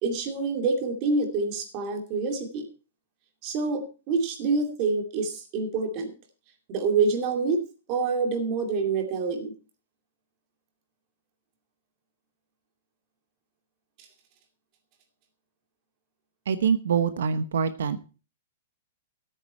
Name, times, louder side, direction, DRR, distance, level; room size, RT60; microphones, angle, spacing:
voice 1, 0.0-2.7 3.4-6.1 6.7-7.6 7.9-9.5, right 4 dB, 30° right, 4 dB, 2.5 m, -26 dB
voice 2, 16.5-18.0, right 6 dB, 80° right, 11 dB, 1.0 m, -25 dB
14.5 x 9.1 x 4.4 m, 0.36 s
hypercardioid pair, 170°, 0 cm